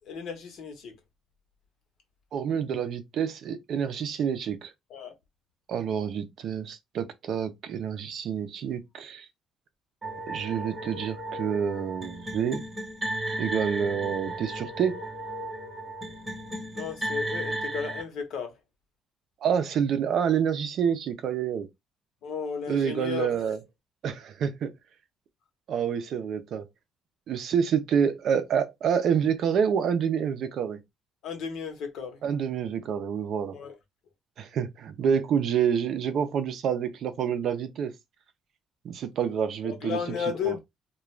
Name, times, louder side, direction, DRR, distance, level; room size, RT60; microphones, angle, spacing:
voice 1, 0.1-0.9 4.9-5.1 16.7-18.5 22.2-23.4 31.2-32.2 33.5-33.8 39.6-40.6, left 6 dB, 60° left, 0.9 m, -34 dB
voice 2, 2.3-4.7 5.7-9.3 10.3-12.6 13.4-15.0 19.4-21.7 22.7-23.6 24.0-24.7 25.7-26.7 27.3-30.8 32.2-33.6 34.4-37.9 38.8-40.6, right 7 dB, 50° right, 0.5 m, -28 dB
sound 1, 10.0-18.0, right 1 dB, 15° right, 0.9 m, -35 dB
2.4 x 2.2 x 3.1 m
cardioid pair, 160°, 0 cm